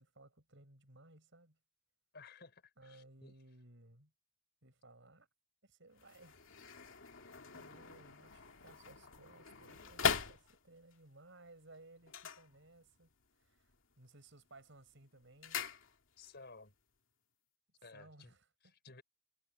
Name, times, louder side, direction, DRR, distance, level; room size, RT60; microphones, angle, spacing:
voice 1, 0.0-1.6 2.8-4.1 4.6-5.3 5.6-7.1 7.5-15.7 17.8-18.7, right 2 dB, 65° right, 7.9 m, -61 dB
voice 2, 2.1-3.3 16.2-16.7 17.8-18.3 18.8-19.0, left 4 dB, 55° left, 4.8 m, -56 dB
sound 1, 5.9-11.0 12.0-13.1 13.4-13.9 14.3-16.4 16.6-16.7, left 6 dB, 70° left, 2.5 m, -41 dB
head